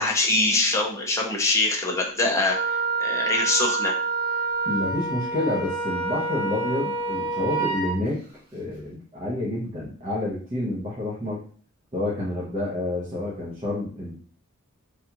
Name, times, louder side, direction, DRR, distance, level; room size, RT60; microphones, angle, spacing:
voice 1, 0.0-3.9, left 2 dB, 15° left, -1 dB, 0.6 m, -24 dB
Wind instrument woodwind instrument, 2.4-7.9, right 4 dB, 45° right, 1.3 m, -27 dB
voice 2, 4.6-8.2 8.5-11.4 11.9-14.2, left 1 dB, 30° right, -7 dB, 0.9 m, -29 dB
3.4 x 2.3 x 2.9 m, 0.43 s
head